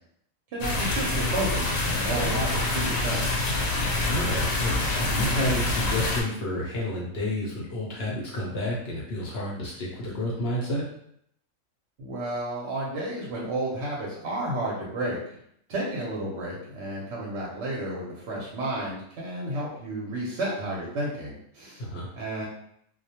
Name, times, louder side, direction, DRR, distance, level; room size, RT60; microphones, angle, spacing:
voice 1, 0.5-3.3 12.0-15.2 15.7-21.9 22.1-22.4, right 1 dB, 60° right, -5 dB, 0.8 m, -31 dB
sound 1, 0.6-6.2, left 2 dB, 80° left, 1.0 m, -26 dB
voice 2, 4.1-10.8 21.8-22.1, left 1 dB, 60° left, -4 dB, 0.7 m, -30 dB
2.3 x 2.1 x 2.8 m, 0.70 s
omnidirectional pair, 1.5 m